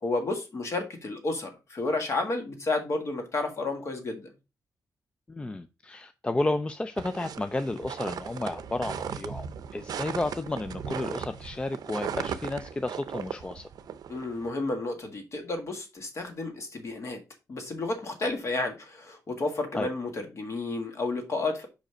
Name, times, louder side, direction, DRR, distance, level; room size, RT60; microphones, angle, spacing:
voice 1, 0.0-4.3 14.1-17.2 17.5-21.7, left 2 dB, 45° left, 1.8 m, -31 dB
voice 2, 5.3-9.5 9.7-13.7 19.8-19.9, left 2 dB, 15° left, 0.4 m, -32 dB
sound 1, 7.0-14.5, right 7 dB, 75° right, 0.6 m, -37 dB
5.2 x 5.1 x 4.9 m
wide cardioid pair, 160°, 7 cm